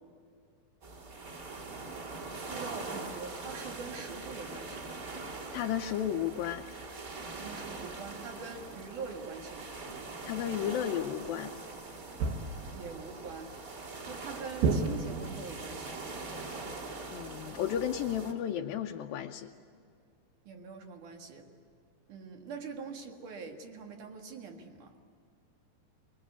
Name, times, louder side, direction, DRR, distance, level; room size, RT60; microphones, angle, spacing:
sound 1, 0.8-18.3, right 3 dB, 25° right, 2.7 m, -43 dB
voice 1, 2.3-5.0 7.4-9.7 12.7-13.5 14.1-16.1 20.5-21.5 22.1-25.0, right 5 dB, 60° right, 3 dB, 3.3 m, -44 dB
voice 2, 5.5-6.7 10.2-11.5 17.1-19.5, left 10 dB, 80° left, 2 dB, 2.4 m, -33 dB
sound 2, 12.2-12.8 14.6-15.4, right 4 dB, 85° right, 3.4 m, -30 dB
24.5 x 22.5 x 8.4 m, 2.4 s
omnidirectional pair, 4.3 m